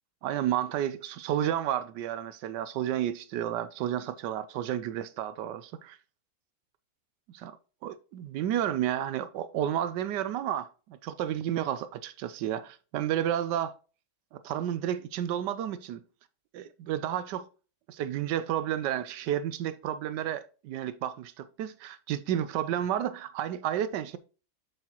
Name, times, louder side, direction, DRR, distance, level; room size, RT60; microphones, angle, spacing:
voice 1, 0.2-6.0 7.3-7.6 7.8-13.7 14.3-16.0 16.5-17.5 17.9-24.2, right 11 dB, 80° right, 1.2 m, -31 dB
7.7 x 7.2 x 2.9 m
omnidirectional pair, 1.9 m